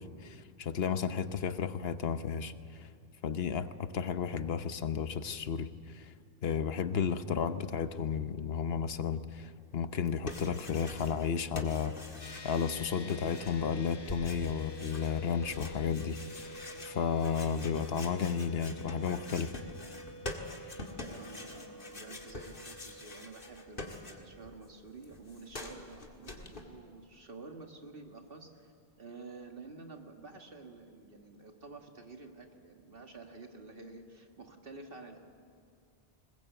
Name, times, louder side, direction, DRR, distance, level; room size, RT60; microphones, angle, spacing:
voice 1, 0.0-2.9 3.2-6.1 6.4-11.9 12.4-19.5, left 7 dB, 75° left, 11 dB, 1.1 m, -33 dB
sound 1, 9.9-11.3 11.5-24.5 24.8-26.6, left 2 dB, 55° left, 2.1 m, -45 dB
sound 2, 12.2-25.8, equal, 25° left, 0.7 m, -49 dB
voice 2, 21.0-35.2, right 3 dB, 60° right, 3 dB, 2.1 m, -50 dB
21.0 x 20.5 x 8.0 m, 2.2 s
omnidirectional pair, 1.0 m